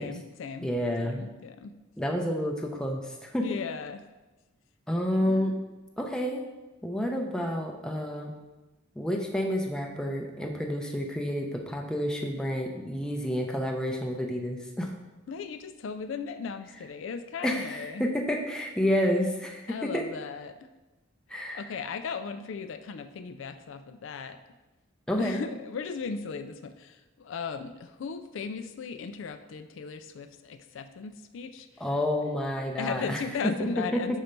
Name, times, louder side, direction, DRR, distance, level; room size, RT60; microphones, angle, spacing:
voice 1, 0.0-0.7 1.0-1.7 3.4-4.0 5.1-5.5 15.3-18.0 19.7-20.7 21.5-24.4 25.2-31.9 32.8-34.2, left 5 dB, 65° left, 9 dB, 0.4 m, -37 dB
voice 2, 0.6-1.2 2.0-3.4 4.9-5.5 6.0-6.4 6.8-8.3 9.0-14.9 17.4-20.0 21.3-21.7 25.1-25.4 31.8-33.2 33.6-34.0, equal, 5° left, 1 dB, 0.6 m, -29 dB
5.5 x 4.4 x 5.2 m, 1.1 s
head